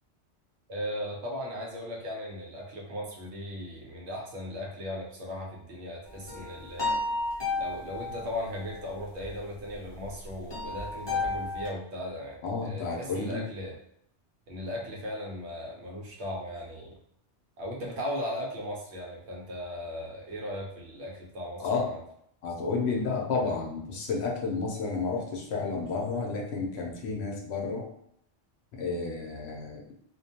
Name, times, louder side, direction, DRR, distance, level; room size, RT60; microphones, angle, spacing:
voice 1, 0.7-7.0 7.5-13.7 14.5-16.9 17.6-21.9, left 1 dB, 80° right, -2 dB, 1.0 m, -37 dB
sound 1, 6.1-11.7, left 3 dB, 30° left, 0.6 m, -33 dB
voice 2, 12.4-13.5 21.6-21.9 22.4-27.9 28.7-29.9, left 4 dB, 70° left, 0 dB, 0.8 m, -31 dB
2.4 x 2.2 x 2.7 m, 0.72 s
omnidirectional pair, 1.1 m